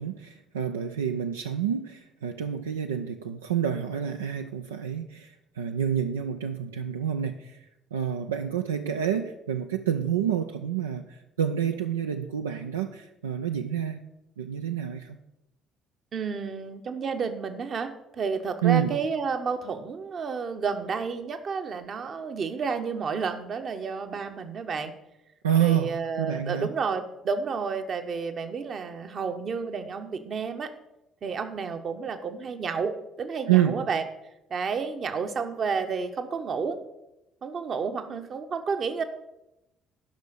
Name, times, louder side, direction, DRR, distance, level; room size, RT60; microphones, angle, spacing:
voice 1, 0.0-7.6 7.9-14.0 14.4-15.2 18.6-18.9 25.4-26.7 33.5-33.8, right 9 dB, 80° right, 6 dB, 0.4 m, -28 dB
voice 2, 16.1-24.9 25.6-30.7 31.2-34.0 34.5-36.8 37.4-39.0, right 5 dB, 45° right, 8 dB, 1.0 m, -31 dB
11.5 x 5.7 x 6.4 m, 0.90 s
figure-of-eight pair, 50°, 0 cm